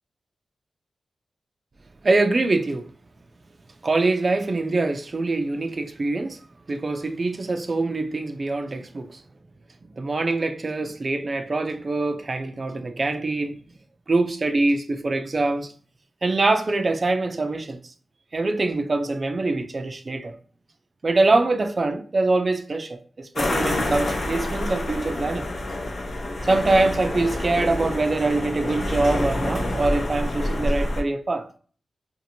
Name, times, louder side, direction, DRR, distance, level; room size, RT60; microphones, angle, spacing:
voice 1, 2.0-2.9 3.8-6.4 6.7-9.2 10.0-13.6 14.1-15.7 16.2-17.8 18.3-20.4 21.0-25.5 26.4-31.5, right 2 dB, 45° right, 0.4 m, -24 dB
sound 1, 23.4-31.0, left 1 dB, 60° left, 0.6 m, -27 dB
2.6 x 2.5 x 2.8 m
cardioid pair, 70°, 0 cm